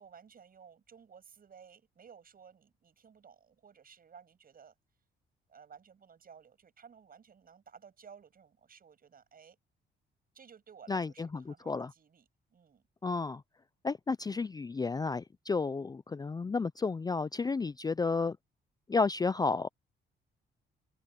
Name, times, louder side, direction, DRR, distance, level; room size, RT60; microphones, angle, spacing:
voice 1, 0.0-4.7 5.5-9.6 10.3-12.8, right 7 dB, 45° right, 6.9 m, -56 dB
voice 2, 10.9-11.9 13.0-13.4 13.8-18.4 18.9-19.7, left 4 dB, 20° left, 0.4 m, -32 dB
open air
cardioid pair, 90°, 20 cm